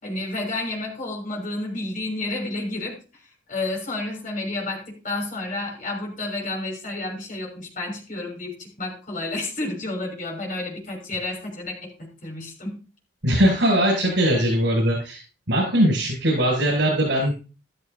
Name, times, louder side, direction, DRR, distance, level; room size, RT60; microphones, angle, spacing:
voice 1, 0.0-3.0 3.5-12.7, left 2 dB, 45° left, 0 dB, 6.2 m, -30 dB
voice 2, 13.2-15.2 15.5-17.3, equal, 75° right, -4 dB, 7.7 m, -20 dB
14.0 x 13.5 x 2.8 m, 0.34 s
head